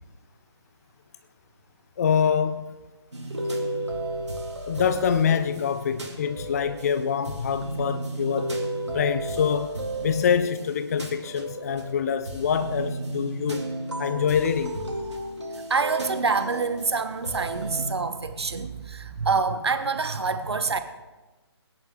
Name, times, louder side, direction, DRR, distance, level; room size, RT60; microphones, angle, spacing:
voice 1, 2.0-2.7 4.7-8.5 8.9-9.7 10.0-13.7 14.0-14.8, left 7 dB, 35° left, 0.5 m, -25 dB
sound 1, 3.1-17.9, right 2 dB, 85° right, 2.6 m, -33 dB
voice 2, 15.7-20.8, right 4 dB, 70° right, 1.1 m, -26 dB
21.0 x 10.5 x 3.7 m
figure-of-eight pair, 145°, 14 cm